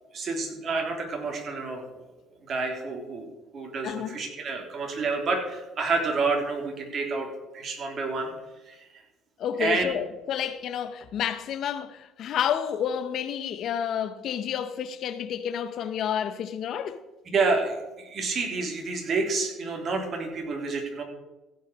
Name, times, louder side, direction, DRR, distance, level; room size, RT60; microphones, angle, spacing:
voice 1, 0.1-1.9 2.5-7.3 7.5-8.3 8.7-9.0 9.6-9.9 17.3-21.0, right 3 dB, 50° right, 3.2 m, -29 dB
voice 2, 3.8-4.2 9.4-17.0, left 9 dB, 60° left, 0.8 m, -30 dB
15.5 x 5.6 x 6.2 m
supercardioid pair, 85°, 0 cm